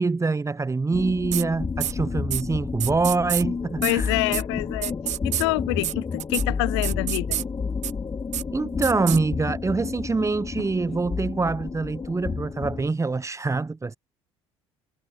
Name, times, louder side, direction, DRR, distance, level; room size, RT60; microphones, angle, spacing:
voice 1, 0.0-4.1 8.5-14.0, right 3 dB, 20° right, 2.8 m, -25 dB
sound 1, 0.9-12.9, left 5 dB, 30° left, 4.1 m, -30 dB
sound 2, 1.3-1.4 1.8-1.9 2.3-2.4 2.8-3.4 3.8-3.9 4.3-4.4 4.8-5.4 5.8-5.9 6.2-6.4 6.8-7.4 7.8-7.9 8.3-8.4 8.8-9.2, right 13 dB, 55° right, 3.4 m, -28 dB
voice 2, 3.8-4.9 5.2-7.4, left 25 dB, 75° left, 1.0 m, -26 dB
hypercardioid pair, 60°, 14 cm